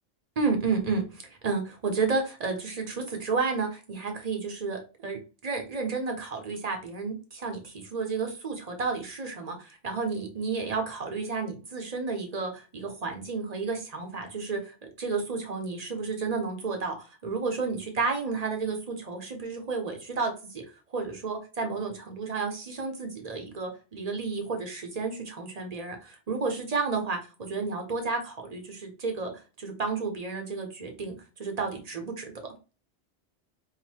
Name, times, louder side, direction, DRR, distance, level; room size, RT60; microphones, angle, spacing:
voice 1, 0.4-20.6 20.9-29.3 29.6-32.3, right 4 dB, 35° right, 4 dB, 1.1 m, -31 dB
3.9 x 2.2 x 4.6 m, 0.32 s
omnidirectional pair, 1.2 m